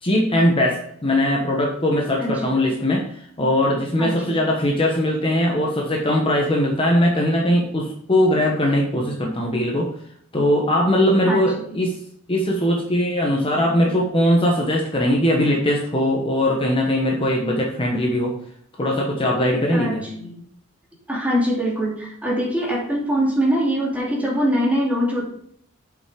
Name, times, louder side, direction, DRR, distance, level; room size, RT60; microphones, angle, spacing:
voice 1, 0.0-9.9 10.3-12.0 12.3-18.3 18.8-20.1, left 1 dB, 25° left, -1 dB, 1.2 m, -20 dB
voice 2, 2.2-2.6 3.6-4.4 11.3-11.7 19.7-20.4 21.1-25.2, equal, 5° right, -4 dB, 2.7 m, -23 dB
7.9 x 5.7 x 5.0 m, 0.67 s
head